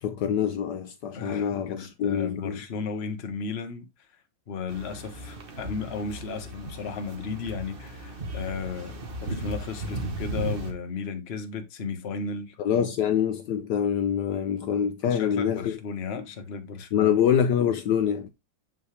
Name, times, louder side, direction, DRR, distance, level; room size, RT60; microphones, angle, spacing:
voice 1, 0.0-2.6 12.6-15.8 16.9-18.3, left 8 dB, 70° left, 1.2 m, -25 dB
voice 2, 1.1-3.9 4.5-12.9 15.0-17.2, left 5 dB, 40° left, 1.1 m, -35 dB
sound 1, 4.7-10.7, right 1 dB, 35° right, 1.1 m, -36 dB
6.9 x 5.7 x 3.2 m
omnidirectional pair, 2.1 m